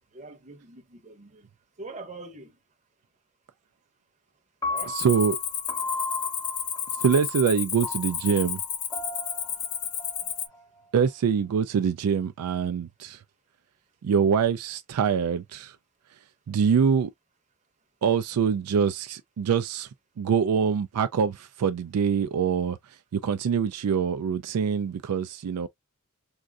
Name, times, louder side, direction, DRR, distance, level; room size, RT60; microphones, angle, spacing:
voice 1, 0.1-1.5 1.8-2.6 4.7-5.0 10.2-10.3, right 3 dB, 35° right, 0.8 m, -43 dB
Piano, 4.6-10.8, left 2 dB, 15° left, 0.5 m, -36 dB
Cricket, 4.8-10.5, left 9 dB, 75° left, 0.8 m, -32 dB
voice 2, 4.9-5.4 7.0-8.6 10.9-13.2 14.0-15.8 16.5-17.1 18.0-19.9 20.2-22.8 23.1-25.7, right 7 dB, 75° right, 0.4 m, -24 dB
3.6 x 2.6 x 2.3 m
head